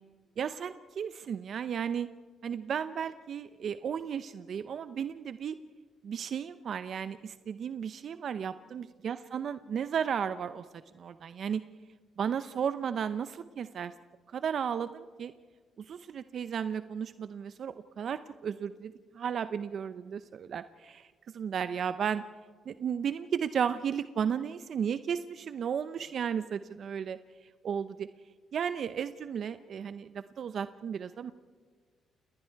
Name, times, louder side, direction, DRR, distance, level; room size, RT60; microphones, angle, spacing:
voice 1, 0.4-2.1 2.4-5.6 6.0-10.6 10.9-11.6 12.2-13.9 14.3-15.3 15.8-21.1 21.3-22.2 22.7-27.2 27.6-28.1 28.5-31.3, right 7 dB, 60° right, 12 dB, 0.6 m, -34 dB
29.5 x 19.0 x 4.6 m, 1.6 s
cardioid pair, 90°, 0 cm